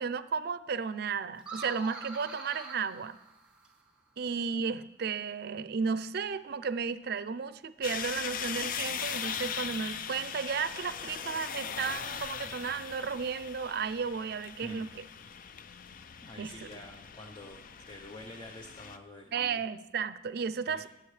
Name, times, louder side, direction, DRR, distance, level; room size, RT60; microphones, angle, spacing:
voice 1, 0.0-3.2 4.2-15.0 16.4-16.7 19.3-20.9, right 6 dB, 60° right, 14 dB, 0.5 m, -34 dB
sound 1, 1.4-3.9, right 2 dB, 5° right, 1.9 m, -45 dB
sound 2, 7.8-19.0, left 7 dB, 50° left, 0.4 m, -40 dB
voice 2, 16.2-17.6 17.9-19.5 20.7-20.8, left 1 dB, 30° left, 3 dB, 0.8 m, -47 dB
18.5 x 7.6 x 3.3 m, 0.95 s
head